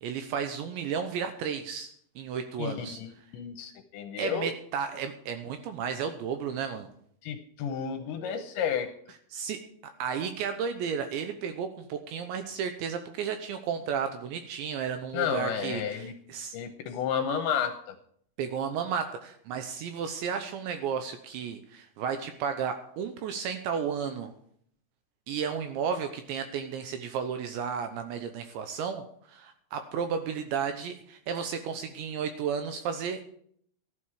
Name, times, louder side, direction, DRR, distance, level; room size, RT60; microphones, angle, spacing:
voice 1, 0.0-3.0 4.2-6.9 9.3-9.7 10.0-16.6 18.4-24.3 25.3-33.2, right 7 dB, 80° right, 7 dB, 2.7 m, -33 dB
voice 2, 2.6-4.5 7.2-8.9 15.1-16.1 16.5-17.8, left 7 dB, 75° left, 6 dB, 2.8 m, -31 dB
15.0 x 11.5 x 4.9 m, 0.64 s
omnidirectional pair, 6.0 m